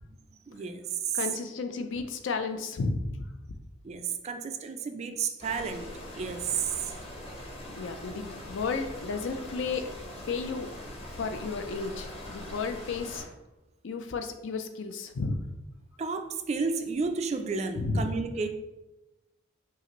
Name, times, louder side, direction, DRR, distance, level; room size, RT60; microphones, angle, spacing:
voice 1, 0.5-1.2 3.8-5.9 6.1-6.9 16.0-18.5, right 5 dB, 30° right, 7 dB, 0.3 m, -32 dB
voice 2, 1.1-3.3 7.8-9.8 10.3-10.7 11.1-13.3 13.8-15.4 17.8-18.1, left 4 dB, 60° left, 6 dB, 0.4 m, -33 dB
sound 1, 5.4-13.2, left 1 dB, 30° left, 0.9 m, -42 dB
5.5 x 2.5 x 3.0 m, 1.0 s
head